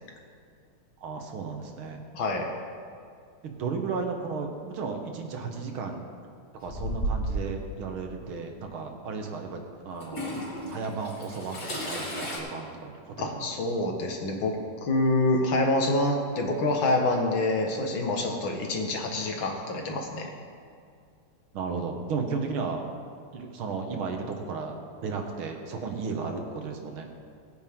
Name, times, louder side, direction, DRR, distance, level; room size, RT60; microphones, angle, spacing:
voice 1, 1.0-2.0 3.4-6.1 6.6-10.3 10.7-13.5 21.5-22.8 23.3-27.1, right 4 dB, 70° right, 3 dB, 2.1 m, -34 dB
voice 2, 2.1-2.5 13.2-14.6 14.8-20.3, left 2 dB, 65° left, 2 dB, 2.2 m, -26 dB
Toilet flush / Trickle dribble, 6.6-7.6 8.6-8.7 10.0-12.4, right 1 dB, 45° left, 3.4 m, -33 dB
19.0 x 9.3 x 3.7 m, 2.3 s
omnidirectional pair, 2.4 m